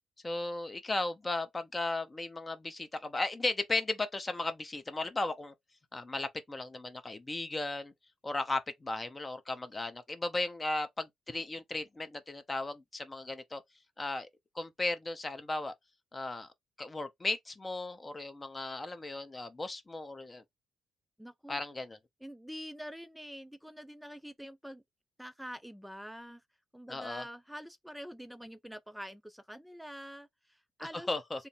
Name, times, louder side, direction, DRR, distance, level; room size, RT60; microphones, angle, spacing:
voice 1, 0.2-5.5 5.9-7.9 8.2-13.6 14.0-14.3 14.5-15.7 16.1-16.5 16.8-20.4 21.5-22.0 26.9-27.2 31.1-31.4, left 2 dB, 20° left, 0.7 m, -36 dB
voice 2, 21.2-21.6 22.2-24.8 25.2-26.4 26.7-31.1, equal, ahead, 0.3 m, -46 dB
3.4 x 2.0 x 4.1 m
cardioid pair, 90°, 0 cm